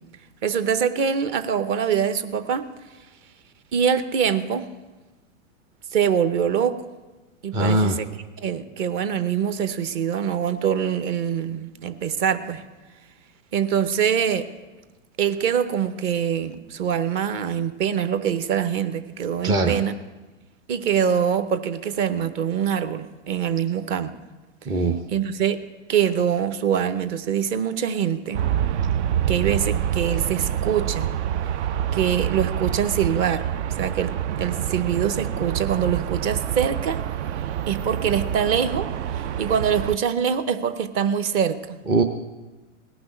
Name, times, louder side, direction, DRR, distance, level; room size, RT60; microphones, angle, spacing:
voice 1, 0.4-2.7 3.7-4.7 5.9-6.7 7.4-8.0 8.4-12.6 13.5-14.5 15.2-20.0 20.7-24.2 25.1-25.6 25.9-28.4 29.3-31.1 31.9-33.5 33.8-37.0 37.7-38.9 39.4-41.8, right 8 dB, 35° right, 10 dB, 0.8 m, -24 dB
voice 2, 7.5-8.0 19.4-19.8 24.7-25.0 41.9-42.0, right 2 dB, 10° right, 3 dB, 0.4 m, -20 dB
Aircraft, 28.3-40.0, right 10 dB, 60° right, 0.6 m, -27 dB
18.0 x 6.1 x 9.9 m, 1.2 s
hypercardioid pair, 130°, 39 cm